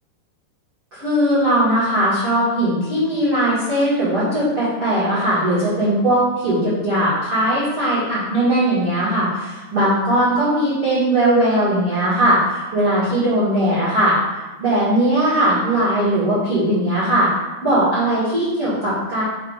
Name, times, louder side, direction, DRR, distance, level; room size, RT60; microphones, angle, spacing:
voice 1, 0.9-14.2 14.6-17.3 17.6-19.2, right 1 dB, 70° right, -12 dB, 1.2 m, -19 dB
7.2 x 2.6 x 5.0 m, 1.2 s
omnidirectional pair, 5.7 m